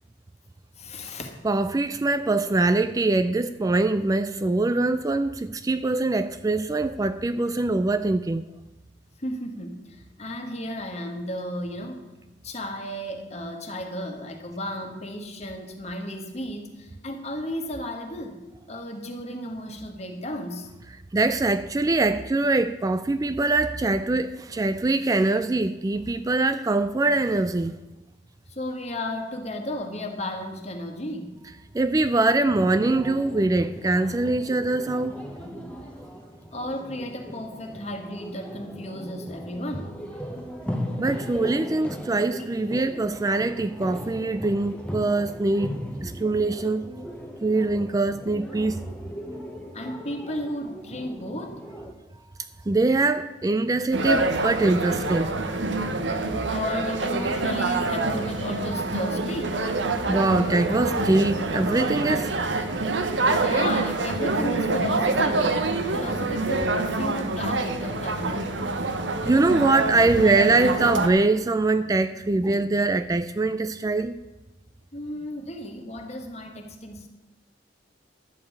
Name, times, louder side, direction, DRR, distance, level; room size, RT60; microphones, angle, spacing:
voice 1, 0.8-1.3 9.2-9.8 10.2-12.0 12.4-20.7 28.5-31.3 36.5-39.9 49.7-51.6 56.5-59.6 63.3-65.6 65.9-68.9 74.9-77.1, left 1 dB, 35° left, 1.5 m, -34 dB
voice 2, 1.4-8.5 21.1-27.8 31.7-35.2 41.0-46.9 47.4-48.8 52.7-55.3 60.0-62.6 69.2-74.2, right 2 dB, 20° right, 0.3 m, -23 dB
sound 1, 32.4-51.9, equal, 5° left, 1.0 m, -38 dB
sound 2, 53.9-71.1, right 3 dB, 90° right, 1.0 m, -26 dB
11.5 x 5.5 x 8.5 m
head